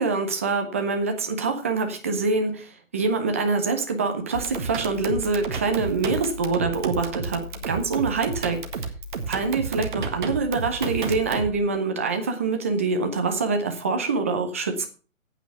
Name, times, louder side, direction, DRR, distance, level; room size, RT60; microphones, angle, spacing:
voice 1, 0.0-8.6 9.3-14.9, right 4 dB, 10° right, 5 dB, 0.6 m, -25 dB
sound 1, 4.3-11.6, right 4 dB, 35° right, 1.7 m, -32 dB
9.1 x 8.7 x 5.7 m, 0.36 s
hypercardioid pair, 155°, 40 cm